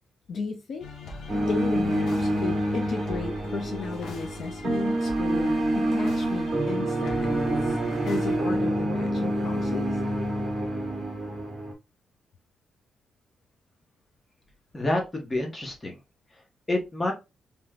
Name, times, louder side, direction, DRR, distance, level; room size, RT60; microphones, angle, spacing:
voice 1, 0.3-0.9 1.5-7.8 8.0-10.0, left 4 dB, 55° left, 5 dB, 0.5 m, -34 dB
sound 1, 0.8-8.4, left 3 dB, 80° left, 0.9 m, -41 dB
sound 2, 1.3-11.7, right 1 dB, 35° right, 1.2 m, -27 dB
voice 2, 14.7-15.9 16.7-17.1, left 1 dB, 20° left, 1 dB, 0.9 m, -28 dB
3.3 x 3.0 x 2.3 m, 0.25 s
wide cardioid pair, 155°, 0 cm